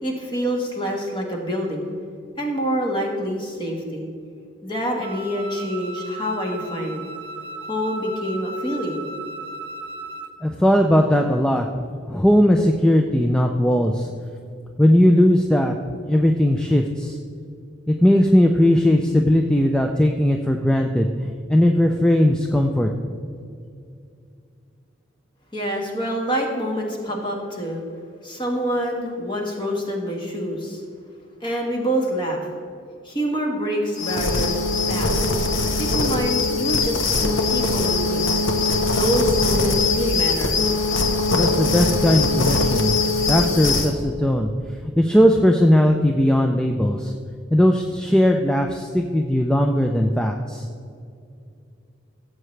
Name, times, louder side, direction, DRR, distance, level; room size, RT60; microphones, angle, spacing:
voice 1, 0.0-1.9 2.4-4.1 4.6-7.1 7.7-9.1 25.5-27.8 28.2-30.8 31.4-32.4 33.0-35.2 35.8-37.1 37.5-38.3 38.9-40.6, equal, 25° left, 0 dB, 1.6 m, -26 dB
Wind instrument woodwind instrument, 5.0-10.4, right 2 dB, 60° right, 0.8 m, -36 dB
voice 2, 10.4-11.7 12.1-14.1 14.8-15.7 16.0-17.2 17.9-21.1 21.5-22.9 41.3-42.9 43.3-44.5 45.0-47.1 47.5-50.7, equal, 5° left, 3 dB, 0.4 m, -18 dB
sound 1, 34.0-43.9, left 3 dB, 90° left, 1.0 m, -21 dB
16.0 x 7.7 x 3.3 m, 2.4 s
head